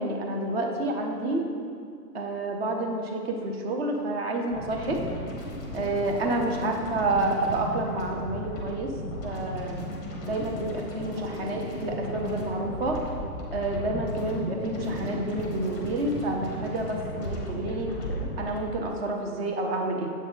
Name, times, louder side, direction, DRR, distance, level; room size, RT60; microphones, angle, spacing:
voice 1, 0.0-1.5 2.1-5.0 5.7-8.9 9.2-9.8 10.2-13.0 13.5-17.9 18.4-20.1, right 2 dB, 40° right, 2 dB, 0.6 m, -29 dB
sound 1, 4.5-18.6, left 1 dB, 15° left, 0.6 m, -36 dB
7.3 x 3.2 x 5.2 m, 2.3 s
hypercardioid pair, 145°, 49 cm